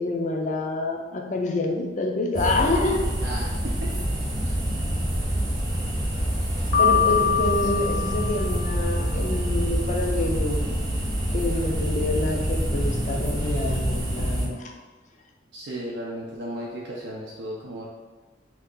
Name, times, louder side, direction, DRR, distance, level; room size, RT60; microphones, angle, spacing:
voice 1, 0.0-3.0 6.8-10.6 11.3-14.7, left 2 dB, 40° left, 2 dB, 0.4 m, -27 dB
sound 1, 2.3-14.5, right 1 dB, 20° right, 0.5 m, -26 dB
voice 2, 3.2-3.9 6.8-7.2 15.5-17.9, equal, 70° right, -4 dB, 0.5 m, -35 dB
Piano, 6.7-8.9, left 8 dB, 75° left, 0.7 m, -24 dB
2.8 x 2.4 x 3.6 m, 1.3 s
head